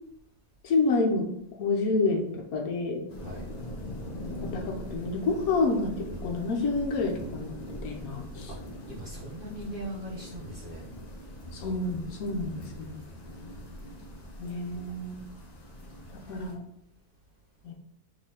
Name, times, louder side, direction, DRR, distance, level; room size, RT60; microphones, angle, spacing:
voice 1, 0.6-1.3 1.6-3.0 4.4-8.5 11.5-13.0 14.4-15.2 16.1-16.6 17.6-17.7, left 3 dB, 70° left, 3 dB, 1.2 m, -29 dB
sound 1, 3.1-16.5, left 1 dB, 50° left, 0.5 m, -42 dB
voice 2, 3.2-3.5 8.5-8.6 8.9-10.9 12.5-13.8 16.2-16.4, right 1 dB, 45° right, -5 dB, 0.8 m, -41 dB
4.3 x 3.1 x 3.6 m, 0.76 s
omnidirectional pair, 1.7 m